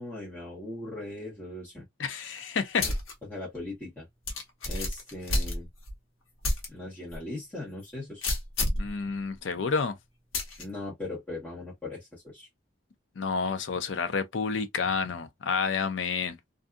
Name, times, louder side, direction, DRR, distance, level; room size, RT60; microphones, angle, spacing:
voice 1, 0.0-1.8 2.8-2.9 3.3-4.1 4.7-5.7 6.7-8.2 10.6-12.5, left 2 dB, 10° left, 1.2 m, -39 dB
voice 2, 2.0-2.9 8.8-10.0 13.2-16.4, left 5 dB, 65° left, 0.5 m, -29 dB
sound 1, 2.8-3.1 3.6-3.7 4.3-5.9 6.4-6.7 7.1-7.2 8.2-8.9 10.3-10.6, left 2 dB, 90° left, 1.0 m, -29 dB
2.6 x 2.5 x 2.4 m
head